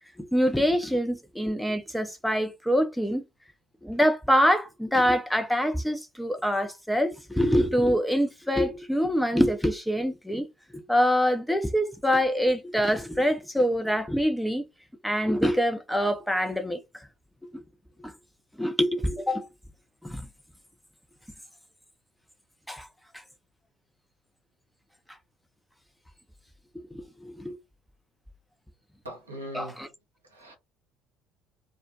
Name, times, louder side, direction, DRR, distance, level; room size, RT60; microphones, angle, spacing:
voice 1, 0.3-3.2 3.8-10.5 10.7-14.6 15.0-17.1 17.5-17.6 18.0-18.1 18.6-19.5 20.0-20.3 22.7-22.9 26.9-27.5 29.5-29.9, equal, 5° left, 0.6 m, -25 dB
voice 2, 29.0-29.8 30.3-30.6, equal, 90° right, 0.6 m, -40 dB
2.2 x 2.1 x 2.7 m
figure-of-eight pair, 55°, 0 cm